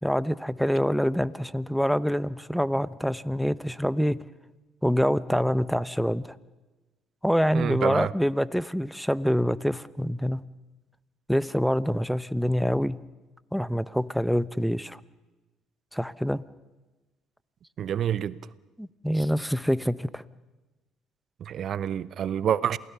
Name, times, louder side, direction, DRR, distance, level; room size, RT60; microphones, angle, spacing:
voice 1, 0.0-4.2 4.8-6.3 7.2-10.4 11.3-13.0 13.5-15.0 15.9-16.4 18.8-20.2, equal, ahead, 0.9 m, -26 dB
voice 2, 7.5-8.1 17.8-18.4 21.4-22.8, right 9 dB, 55° right, 0.8 m, -27 dB
27.5 x 18.0 x 7.0 m
hypercardioid pair, 60°, 0 cm